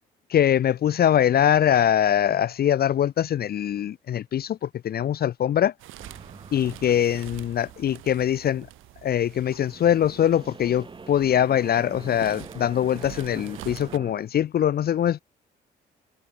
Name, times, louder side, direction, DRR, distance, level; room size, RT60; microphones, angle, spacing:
voice 1, 0.3-5.7 6.5-8.7 9.0-15.2, left 10 dB, 50° left, 0.6 m, -22 dB
sound 1, 5.8-14.0, right 16 dB, 90° right, 4.8 m, -46 dB
sound 2, 6.0-9.2 9.5-14.1, right 4 dB, 25° right, 2.1 m, -45 dB
cardioid pair, 90°, 20 cm